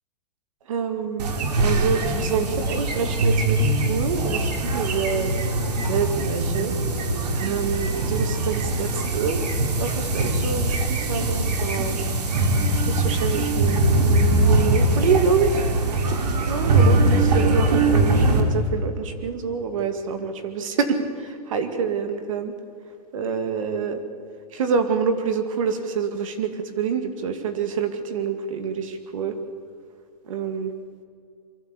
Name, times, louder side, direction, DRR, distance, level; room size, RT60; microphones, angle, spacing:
voice 1, 0.7-1.3 1.6-3.6 3.9-5.3 5.9-6.7 7.3-9.4 9.8-12.0 12.9-15.6 16.5-22.5 23.1-24.0 24.5-29.3 30.3-30.7, right 6 dB, 55° right, 7 dB, 2.0 m, -26 dB
sound 1, 1.2-18.4, right 2 dB, 90° right, 3.4 m, -22 dB
23.5 x 15.0 x 8.4 m, 2.4 s
hypercardioid pair, 170°, 20 cm